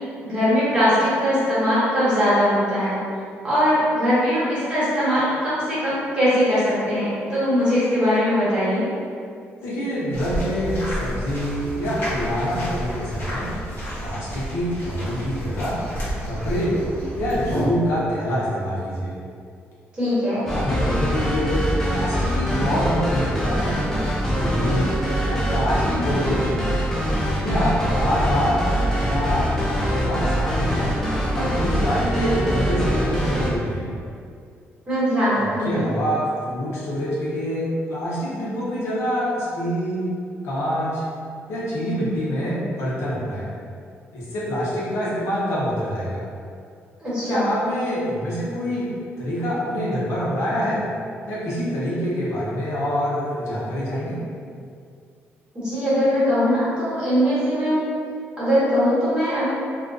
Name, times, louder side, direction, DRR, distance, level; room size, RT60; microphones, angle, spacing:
voice 1, 0.2-2.9 3.4-8.8 19.9-20.5 34.9-35.9 47.0-47.5 55.5-57.8 58.4-59.5, equal, 20° right, -12 dB, 1.2 m, -21 dB
voice 2, 9.6-13.5 14.0-15.8 16.2-16.8 17.2-19.1 20.5-23.8 24.2-24.9 25.3-26.7 27.4-29.5 29.7-30.9 31.3-33.9 35.6-40.1 40.4-41.0 41.5-43.5 44.1-46.2 47.3-48.9 49.2-50.8 51.3-54.2, equal, 75° left, -7 dB, 0.7 m, -25 dB
sound 1, 10.1-17.7, equal, 50° left, 1.0 m, -31 dB
sound 2, 20.5-33.5, equal, 10° left, 0.3 m, -23 dB
2.4 x 2.3 x 2.4 m, 2.3 s
cardioid pair, 145°, 5 cm